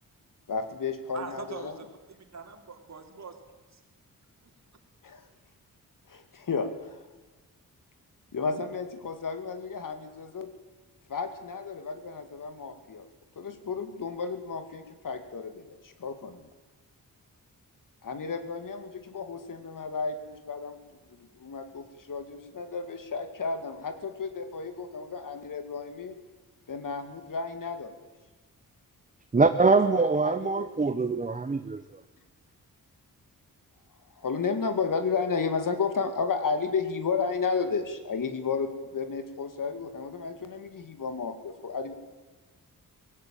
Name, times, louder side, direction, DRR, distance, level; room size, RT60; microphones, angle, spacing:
voice 1, 0.5-1.7 5.0-5.3 6.1-7.0 8.3-10.5 11.1-13.1 13.4-16.4 18.0-20.8 21.1-26.2 26.7-27.9 29.7-31.0 34.2-41.9, left 5 dB, 65° left, 8 dB, 2.4 m, -33 dB
voice 2, 1.1-1.8 2.2-3.4 3.7-3.8 4.4-4.5, right 5 dB, 50° right, 4 dB, 3.4 m, -42 dB
voice 3, 29.3-31.8, right 4 dB, 20° right, 10 dB, 0.8 m, -23 dB
18.5 x 16.5 x 9.0 m, 1.2 s
wide cardioid pair, 95°, 35 cm